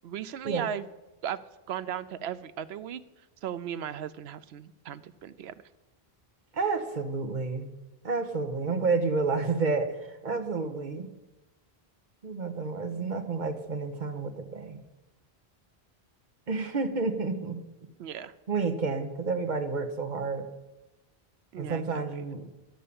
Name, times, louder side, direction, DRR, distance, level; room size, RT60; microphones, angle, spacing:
voice 1, 0.0-0.8 1.2-1.4 1.7-3.0 3.4-5.5 18.0-18.3 21.5-22.0, right 9 dB, 90° right, 14 dB, 0.9 m, -36 dB
voice 2, 6.5-7.7 8.0-11.1 12.2-14.8 16.5-17.6 18.5-20.5 21.6-22.5, right 4 dB, 50° right, 7 dB, 1.1 m, -30 dB
11.5 x 5.5 x 8.6 m, 1.0 s
omnidirectional pair, 1.0 m